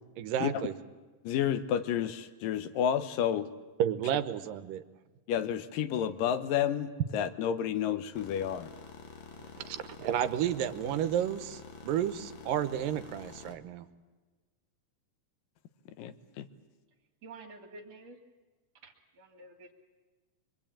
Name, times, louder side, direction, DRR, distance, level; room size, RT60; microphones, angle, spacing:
voice 1, 0.2-0.7 3.8-4.8 9.6-13.9, right 10 dB, 85° right, 11 dB, 2.6 m, -31 dB
voice 2, 1.2-3.5 5.3-8.7 16.0-16.5, left 9 dB, 85° left, 11 dB, 2.7 m, -30 dB
sound 1, 8.1-13.5, left 5 dB, 45° left, 1.8 m, -48 dB
voice 3, 17.2-18.2 18.8-19.7, right 3 dB, 55° right, 3 dB, 3.2 m, -50 dB
24.0 x 23.5 x 8.8 m, 1.3 s
omnidirectional pair, 3.8 m